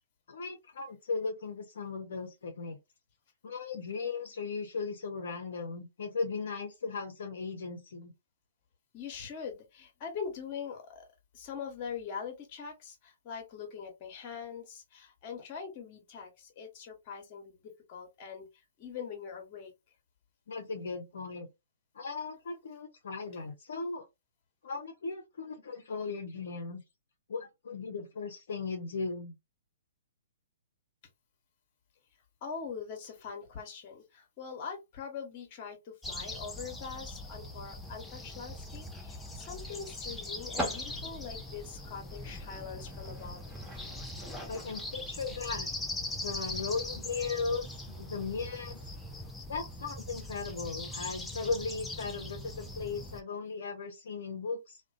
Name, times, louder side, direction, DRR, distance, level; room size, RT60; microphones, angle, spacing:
voice 1, 0.3-2.8 3.4-8.1 20.5-21.5 21.9-24.0 24.6-26.8 27.3-29.3 44.5-45.7 46.2-48.9 49.5-54.8, left 4 dB, 60° left, 0.5 m, -37 dB
voice 2, 8.9-11.1 11.3-18.5 18.8-19.7 32.4-43.5, left 6 dB, 35° left, 1.0 m, -42 dB
sound 1, 36.0-53.2, left 2 dB, 5° left, 0.4 m, -41 dB
sound 2, 37.8-49.3, equal, 10° right, 1.2 m, -46 dB
2.4 x 2.2 x 2.4 m
figure-of-eight pair, 120°, 0 cm